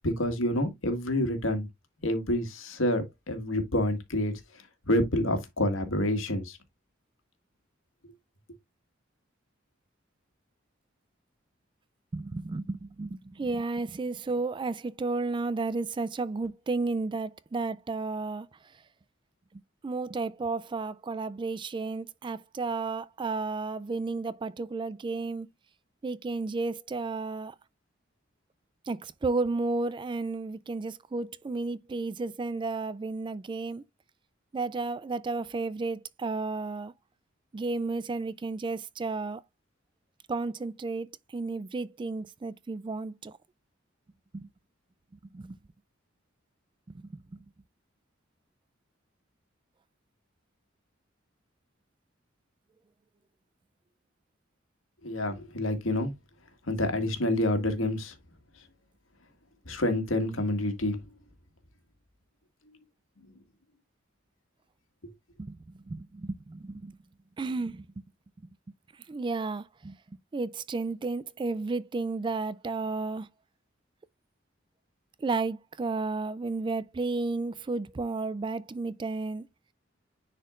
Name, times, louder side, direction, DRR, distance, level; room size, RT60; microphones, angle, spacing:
voice 1, 0.0-1.7 2.0-4.3 4.8-6.6 55.0-56.1 56.7-58.1 59.7-61.0 65.0-65.1, left 1 dB, 90° left, 1.8 m, -28 dB
voice 2, 12.1-18.5 19.5-25.5 26.0-27.6 28.9-33.8 34.5-36.9 37.5-39.4 40.3-43.4 44.3-44.5 45.3-45.6 46.9-47.5 65.4-67.0 67.4-68.1 69.1-70.0 70.3-73.3 75.2-79.5, right 3 dB, 25° right, 0.3 m, -33 dB
10.0 x 4.3 x 2.4 m
head